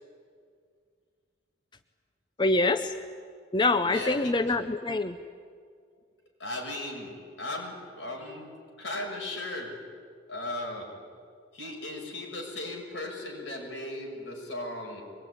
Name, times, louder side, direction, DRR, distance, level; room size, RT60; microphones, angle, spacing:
voice 1, 2.4-2.9 3.5-5.2, left 2 dB, 25° left, 9 dB, 0.6 m, -25 dB
voice 2, 3.8-4.5 6.4-8.5 8.8-9.8 10.3-10.9 11.5-15.0, left 1 dB, 80° left, 0 dB, 6.7 m, -37 dB
24.0 x 21.0 x 10.0 m, 2.1 s
head